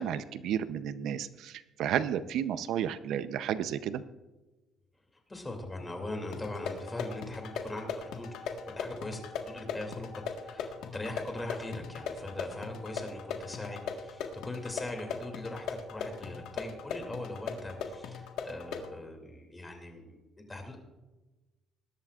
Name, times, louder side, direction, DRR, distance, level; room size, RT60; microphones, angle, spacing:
voice 1, 0.0-4.0, right 9 dB, 75° right, 13 dB, 0.6 m, -32 dB
voice 2, 5.1-20.8, left 1 dB, 15° left, 3 dB, 2.6 m, -41 dB
sound 1, 6.3-18.9, left 6 dB, 85° left, 1.5 m, -39 dB
20.5 x 11.0 x 2.4 m, 1.1 s
cardioid pair, 125°, 0 cm